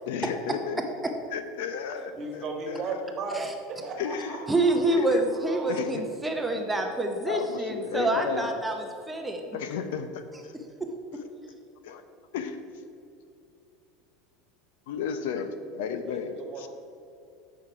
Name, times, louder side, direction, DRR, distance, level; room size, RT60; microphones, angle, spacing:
voice 1, 0.0-0.8 1.3-2.9 4.0-4.4 4.9-5.3 5.7-6.0 6.5-6.6 7.2-8.5 9.5-10.6 11.8-12.0 12.3-12.6 14.9-16.7, left 7 dB, 80° left, 9 dB, 0.7 m, -33 dB
voice 2, 2.2-5.8 16.1-16.7, right 3 dB, 35° right, 2 dB, 1.5 m, -36 dB
voice 3, 4.5-8.7 9.1-9.6 10.8-10.9, right 2 dB, 10° right, 3 dB, 0.7 m, -27 dB
8.3 x 5.9 x 4.7 m, 2.6 s
supercardioid pair, 145°, 0 cm